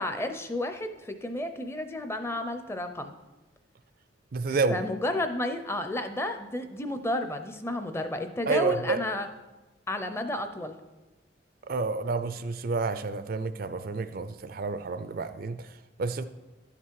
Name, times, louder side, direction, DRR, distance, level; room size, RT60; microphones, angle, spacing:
voice 1, 0.0-3.1 4.7-9.3 9.9-10.7, left 1 dB, 15° left, 8 dB, 0.5 m, -32 dB
voice 2, 4.3-4.8 8.5-9.0 11.7-16.2, right 4 dB, 45° right, 11 dB, 0.4 m, -29 dB
11.5 x 5.9 x 4.7 m, 1.1 s
head